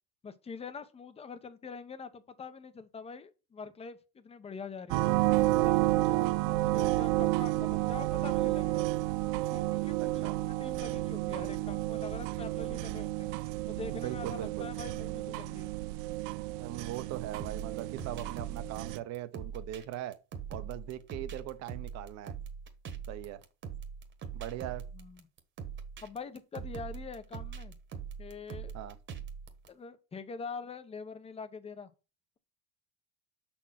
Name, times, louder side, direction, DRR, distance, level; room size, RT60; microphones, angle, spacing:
voice 1, 0.2-5.1 5.6-9.1 9.5-13.3 13.7-15.7 24.9-25.2 26.0-27.8 28.2-28.7 29.7-31.9, left 5 dB, 20° left, 0.8 m, -44 dB
sound 1, 4.9-19.0, right 18 dB, 70° right, 0.6 m, -31 dB
voice 2, 10.0-10.4 13.9-14.7 16.6-20.2 20.5-22.3 23.1-23.4 24.3-24.8 28.7-29.0, right 13 dB, 50° right, 0.9 m, -40 dB
sound 2, 17.4-29.7, right 6 dB, 35° right, 1.3 m, -42 dB
6.0 x 4.4 x 5.8 m
cardioid pair, 130°, 33 cm